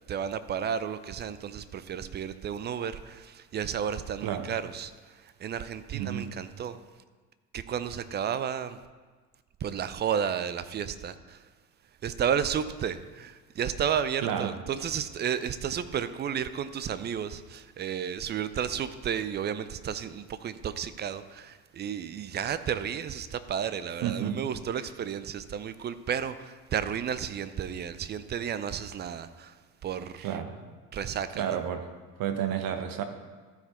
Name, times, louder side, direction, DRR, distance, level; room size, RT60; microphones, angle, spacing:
voice 1, 0.1-6.8 7.5-8.8 9.6-11.5 12.0-29.6 29.8-30.4 30.9-31.6, right 8 dB, 25° right, 13 dB, 0.4 m, -32 dB
voice 2, 4.2-4.5 5.9-6.3 14.2-14.5 24.0-24.4 30.2-30.6 31.3-31.8 32.2-33.0, right 9 dB, 45° right, 7 dB, 1.0 m, -31 dB
14.0 x 4.7 x 4.3 m, 1.4 s
figure-of-eight pair, 60°, 48 cm